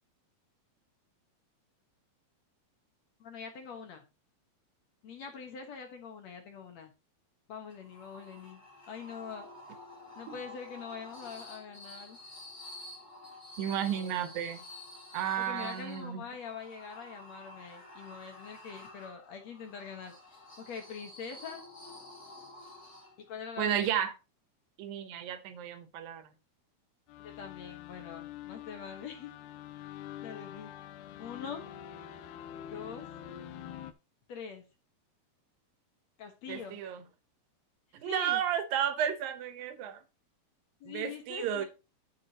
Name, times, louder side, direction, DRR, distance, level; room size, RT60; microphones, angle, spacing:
voice 1, 3.2-4.0 5.0-6.9 7.5-8.6 8.9-9.5 10.2-12.2 15.4-20.1 20.6-21.6 23.3-23.9 27.2-29.3 30.2-30.7 31.2-31.7 32.7-33.1 34.3-34.6 36.2-36.8 38.0-38.4 40.8-41.7, left 6 dB, 60° left, 2.0 m, -44 dB
sound 1, 7.7-23.4, left 1 dB, 30° left, 2.2 m, -50 dB
voice 2, 13.6-14.6 15.1-16.2 23.6-24.1 24.8-26.3 36.5-37.0 38.0-40.0 40.8-41.7, right 9 dB, 70° right, 2.6 m, -32 dB
sound 2, 27.1-33.9, left 11 dB, 80° left, 2.6 m, -46 dB
11.0 x 7.1 x 3.0 m
omnidirectional pair, 4.6 m